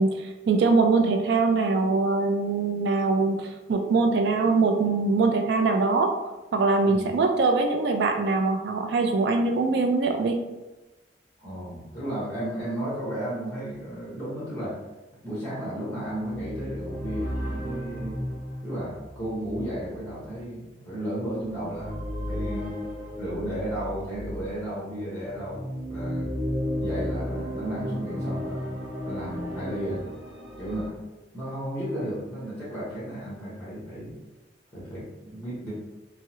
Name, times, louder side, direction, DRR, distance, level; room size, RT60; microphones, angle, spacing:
voice 1, 0.0-6.1 6.5-10.4, right 3 dB, 65° right, 4 dB, 0.3 m, -23 dB
voice 2, 11.4-14.8 15.2-18.2 18.6-22.8 23.1-26.3 26.8-28.8 29.0-30.0 30.6-31.0 31.3-34.1 34.7-35.7, right 1 dB, 15° left, -8 dB, 1.0 m, -34 dB
sound 1, 16.1-24.6 25.2-30.9, equal, 40° left, 0.8 m, -34 dB
3.5 x 2.0 x 2.8 m, 1.1 s
head